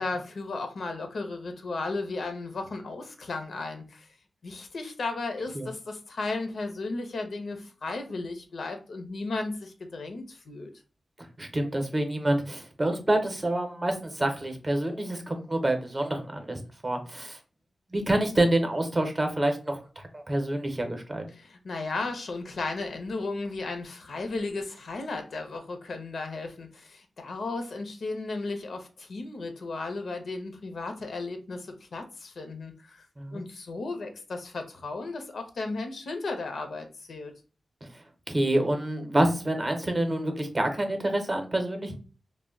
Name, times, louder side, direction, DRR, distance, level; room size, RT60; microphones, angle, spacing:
voice 1, 0.0-4.1 4.4-10.7 21.3-33.0 33.3-37.3, left 3 dB, 75° left, 5 dB, 0.5 m, -35 dB
voice 2, 11.4-17.4 17.9-21.3 33.2-33.4 37.8-37.9 38.3-42.0, right 1 dB, 30° right, 5 dB, 0.6 m, -27 dB
2.1 x 2.0 x 3.5 m, 0.36 s
wide cardioid pair, 100°, 0 cm